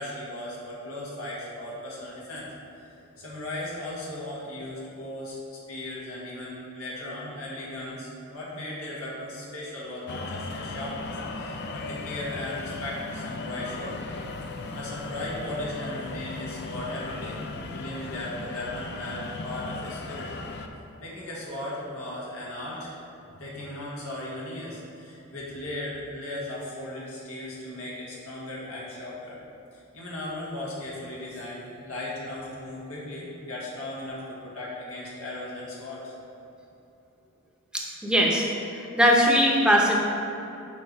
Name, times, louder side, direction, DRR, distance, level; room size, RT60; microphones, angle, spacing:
voice 1, 0.0-2.5 2.8-2.9 3.2-5.4 5.7-14.2 14.5-17.4 17.7-20.3 21.0-22.9 23.4-29.4 29.7-36.1, left 1 dB, 85° left, -6 dB, 1.7 m, -37 dB
sound 1, 10.1-20.7, left 3 dB, 50° left, 0.5 m, -37 dB
voice 2, 37.7-38.4 38.7-40.0, equal, 5° right, -2 dB, 0.8 m, -21 dB
7.0 x 4.5 x 5.4 m, 2.8 s
head